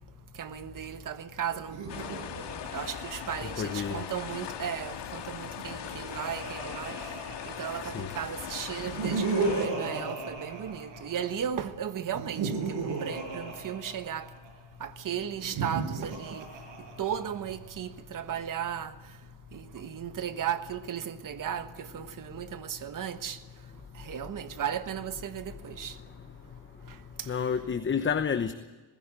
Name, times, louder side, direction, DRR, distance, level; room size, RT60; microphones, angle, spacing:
voice 1, 0.3-2.4 2.7-7.2 7.4-14.3 14.8-16.5 17.0-18.9 19.5-23.4 23.9-26.0 26.9-27.6, right 9 dB, 45° right, 1.3 m, -36 dB
Laughter, 1.6-4.4 5.5-8.0 8.7-11.4 12.1-14.5 15.4-17.5, right 4 dB, 70° right, 5.5 m, -35 dB
sound 1, 1.9-9.7, left 9 dB, 60° left, 2.0 m, -40 dB
voice 2, 3.6-4.0 7.8-8.1 27.3-28.5, left 6 dB, 25° left, 0.9 m, -29 dB
19.5 x 16.0 x 8.9 m
cardioid pair, 115°, 46 cm